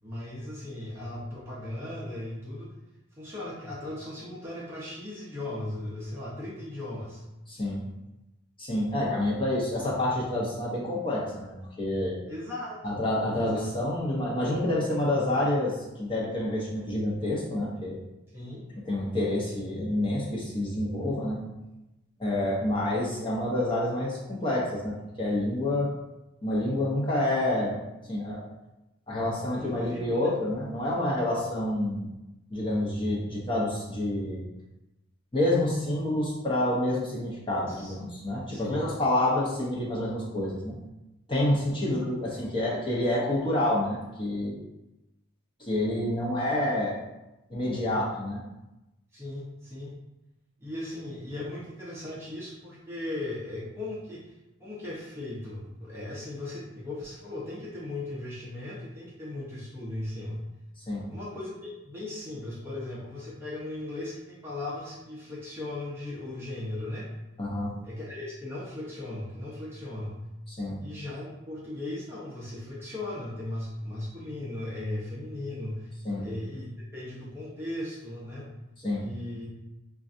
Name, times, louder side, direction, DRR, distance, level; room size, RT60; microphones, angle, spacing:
voice 1, 0.0-2.7 3.1-7.2 12.3-13.0 13.4-13.7 18.3-18.6 29.5-30.3 37.7-38.0 38.5-38.8 41.8-42.0 49.1-49.9 50.6-54.3 54.6-60.4 61.1-67.1 67.8-70.2 70.8-75.9 76.2-78.5 79.0-79.5, left 1 dB, 10° right, -6 dB, 0.6 m, -37 dB
voice 2, 7.5-7.8 8.6-12.1 12.8-18.0 18.8-21.4 22.2-25.9 26.4-27.8 28.1-28.4 29.1-32.1 32.5-34.4 35.3-40.7 41.3-44.6 45.7-47.0 47.5-48.4 60.9-61.1 67.4-67.7 70.5-70.8 76.0-76.3 78.8-79.1, left 1 dB, 25° left, -5 dB, 0.8 m, -28 dB
5.2 x 2.4 x 2.6 m, 0.98 s
head